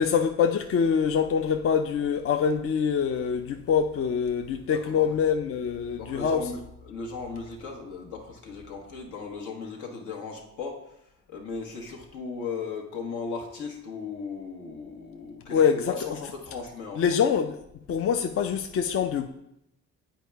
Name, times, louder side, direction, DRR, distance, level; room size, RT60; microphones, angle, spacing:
voice 1, 0.0-6.5 15.5-16.0 17.0-17.6 17.9-19.3, left 7 dB, 50° left, 0.4 m, -25 dB
voice 2, 4.6-5.1 6.0-6.6 6.8-11.0 11.3-17.1, left 4 dB, 80° left, 1.3 m, -37 dB
8.1 x 4.5 x 3.4 m
cardioid pair, 90°, 30 cm